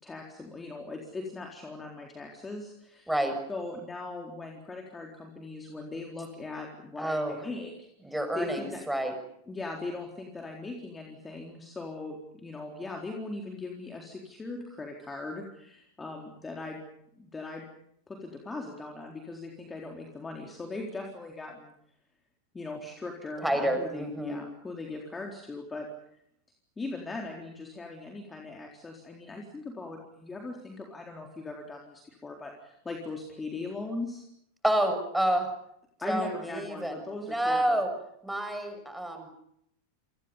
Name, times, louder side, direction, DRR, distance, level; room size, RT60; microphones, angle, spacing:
voice 1, 0.0-3.1 3.5-8.8 9.5-16.8 17.1-17.7 18.1-21.7 22.5-25.9 26.8-34.2 36.0-37.8, left 3 dB, 15° left, 2 dB, 4.0 m, -39 dB
voice 2, 3.1-3.4 7.0-7.4 8.0-9.1 23.4-24.4 34.6-35.5 36.0-37.9 38.2-39.3, right 1 dB, 5° right, 7 dB, 6.8 m, -29 dB
30.0 x 26.5 x 5.5 m, 0.75 s
figure-of-eight pair, 90°, 0 cm